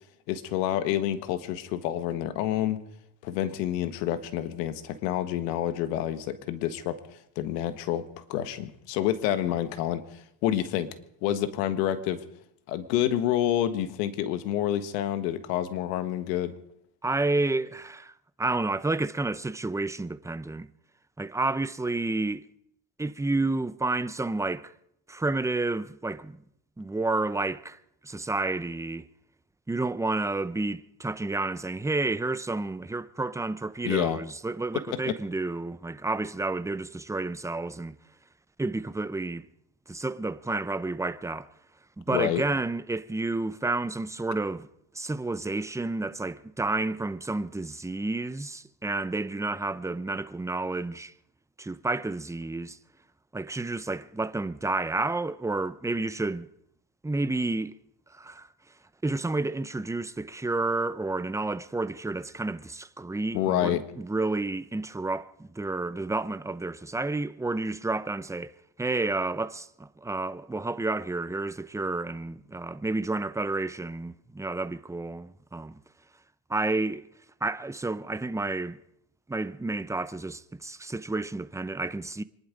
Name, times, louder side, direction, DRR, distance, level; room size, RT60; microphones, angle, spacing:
voice 1, 0.3-2.8 3.2-10.9 11.2-12.2 12.7-16.5 33.8-34.2 34.9-35.1 42.1-42.4 63.3-63.8, left 11 dB, 90° left, 1.5 m, -28 dB
voice 2, 17.0-18.1 18.4-20.7 21.2-22.4 23.0-24.7 25.1-26.4 26.8-27.8 28.0-29.0 29.7-38.0 38.6-39.4 39.9-41.5 42.0-44.7 44.9-51.1 51.6-52.8 53.3-56.5 57.0-57.8 58.1-58.5 59.0-75.8 76.5-77.1 77.4-78.8 79.3-82.2, right 2 dB, 5° right, 0.7 m, -30 dB
25.5 x 11.0 x 5.2 m
supercardioid pair, 90°, 48 cm